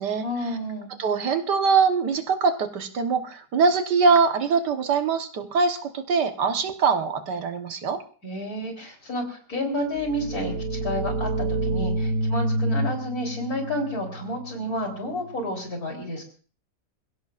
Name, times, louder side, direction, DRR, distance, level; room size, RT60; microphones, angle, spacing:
voice 1, 0.2-0.9 8.2-16.2, left 1 dB, 60° left, 2 dB, 4.1 m, -30 dB
voice 2, 1.0-8.0, right 5 dB, 85° right, 7 dB, 1.9 m, -23 dB
sound 1, 9.9-15.5, right 1 dB, 65° right, 2.9 m, -28 dB
27.5 x 16.0 x 2.5 m, 0.40 s
omnidirectional pair, 1.8 m